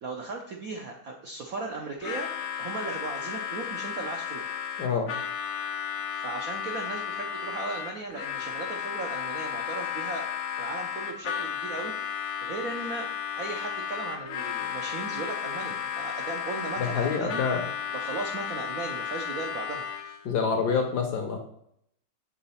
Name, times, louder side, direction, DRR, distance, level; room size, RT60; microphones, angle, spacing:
voice 1, 0.0-2.3 2.6-4.6 6.1-10.3 10.6-13.1 13.4-17.4 17.9-19.8, right 3 dB, 65° right, 1 dB, 0.8 m, -37 dB
Harmonica, 2.0-20.3, left 8 dB, 90° left, 0.7 m, -34 dB
voice 2, 4.8-5.1 16.8-17.6 20.2-21.4, left 6 dB, 60° left, 4 dB, 1.1 m, -27 dB
7.2 x 3.8 x 5.6 m, 0.72 s
omnidirectional pair, 2.4 m